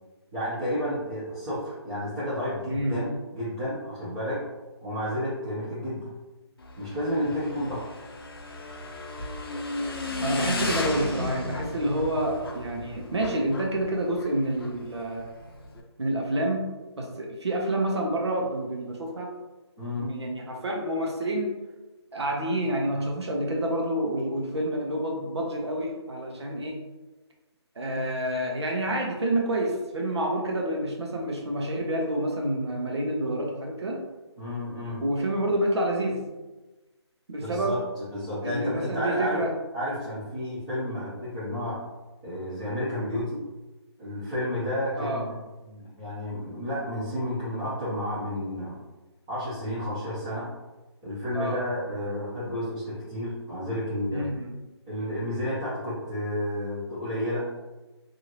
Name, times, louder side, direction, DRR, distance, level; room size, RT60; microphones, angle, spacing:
voice 1, 0.3-4.4 4.8-6.2 6.8-7.8 19.8-20.1 34.4-35.0 37.4-39.4 39.7-41.8 42.2-43.4 44.0-48.7 49.3-50.5 51.0-54.3 54.9-57.5, left 1 dB, 15° right, -15 dB, 0.8 m, -31 dB
voice 2, 2.7-3.0 10.2-15.3 16.0-16.6 17.0-19.3 20.0-21.6 22.1-26.8 27.8-34.0 35.0-36.2 37.3-37.8 38.4-39.5 45.0-45.3 51.3-51.6 54.1-54.5, right 1 dB, 70° right, 0 dB, 0.9 m, -28 dB
Motorcycle / Engine, 6.6-15.8, left 2 dB, 55° left, 0.6 m, -35 dB
2.8 x 2.6 x 2.9 m, 1.1 s
hypercardioid pair, 170°, 15 cm